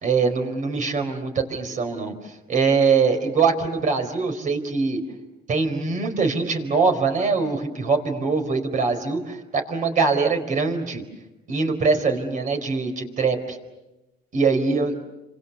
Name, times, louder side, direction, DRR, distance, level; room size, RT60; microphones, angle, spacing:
voice 1, 0.0-2.1 2.5-5.0 5.5-11.0 11.5-13.6 14.3-14.9, right 4 dB, 50° right, 6 dB, 4.4 m, -23 dB
30.0 x 26.0 x 7.0 m, 0.99 s
cardioid pair, 110°, 17 cm